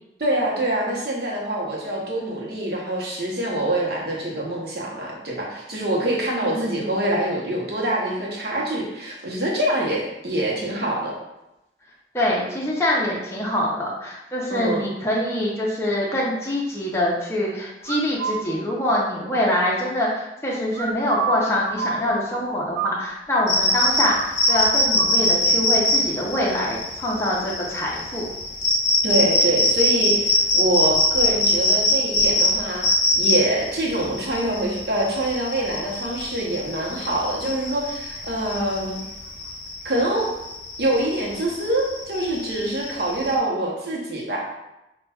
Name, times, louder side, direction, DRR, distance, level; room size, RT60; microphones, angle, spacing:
voice 1, 0.2-11.1 14.5-14.8 29.0-32.9 33.2-39.0 39.8-40.3 40.8-44.4, right 1 dB, 65° right, -2 dB, 0.8 m, -25 dB
voice 2, 6.3-6.8 12.1-28.3, left 1 dB, 15° left, -5 dB, 0.5 m, -24 dB
sound 1, 17.9-18.4 20.7-23.5 23.8-23.9 24.2-25.2, right 6 dB, 85° right, 0.3 m, -29 dB
sound 2, 23.5-43.4, left 1 dB, 45° left, 0.8 m, -23 dB
5.6 x 2.2 x 2.3 m, 0.93 s
head